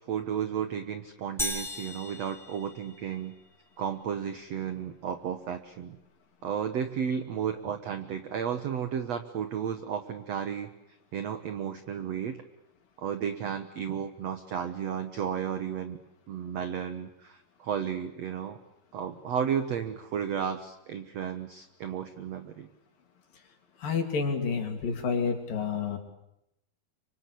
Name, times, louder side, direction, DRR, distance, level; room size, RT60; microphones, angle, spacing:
voice 1, 0.1-3.3 3.8-6.0 6.4-10.7 11.1-12.4 13.0-16.0 16.3-18.6 18.9-22.7, right 8 dB, 60° right, 9 dB, 1.8 m, -33 dB
sound 1, 1.4-3.3, left 1 dB, ahead, 4.6 m, -36 dB
voice 2, 23.8-26.0, left 5 dB, 60° left, 4 dB, 4.7 m, -29 dB
26.5 x 25.5 x 8.4 m, 0.82 s
omnidirectional pair, 4.5 m